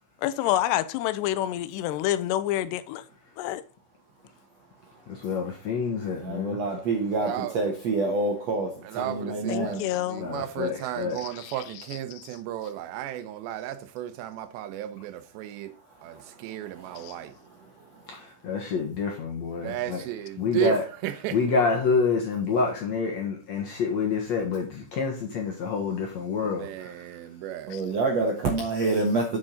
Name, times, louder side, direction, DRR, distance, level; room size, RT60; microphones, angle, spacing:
voice 1, 0.2-3.0 3.4-3.6 9.5-10.3 11.2-11.6 12.2-12.3 17.0-17.2 27.7-27.8, left 13 dB, 85° left, 2.7 m, -28 dB
voice 2, 5.1-6.6 9.6-9.7 10.2-11.2 18.1-20.0 20.4-20.8 21.3-27.0, left 5 dB, 60° left, 1.9 m, -28 dB
voice 3, 6.2-9.8 16.8-17.0 27.7-29.4, right 3 dB, 60° right, 1.7 m, -27 dB
voice 4, 7.2-7.6 8.8-15.7 16.0-17.3 19.6-21.4 26.4-27.7, right 13 dB, 90° right, 3.1 m, -34 dB
7.5 x 7.5 x 3.8 m
omnidirectional pair, 4.9 m